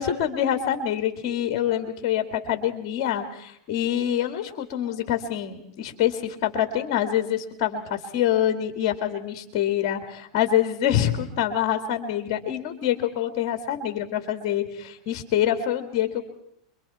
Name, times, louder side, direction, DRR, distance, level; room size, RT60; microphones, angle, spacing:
voice 1, 0.0-16.2, left 10 dB, 50° left, 8 dB, 2.3 m, -26 dB
27.0 x 23.0 x 4.3 m, 0.77 s
hypercardioid pair, 115°, 3 cm